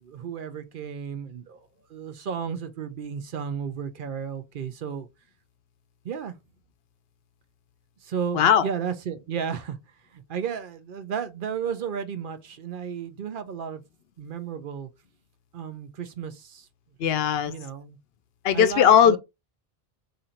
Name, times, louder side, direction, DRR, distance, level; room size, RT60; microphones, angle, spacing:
voice 1, 0.0-1.6 1.9-5.1 6.0-6.4 8.0-9.8 10.1-13.8 14.2-14.9 15.5-16.7 17.5-18.0 18.5-19.2, right 7 dB, 60° right, 0.7 m, -33 dB
voice 2, 8.3-8.7 17.0-17.5 18.4-19.2, left 9 dB, 75° left, 0.8 m, -18 dB
3.9 x 2.6 x 4.3 m
omnidirectional pair, 1.1 m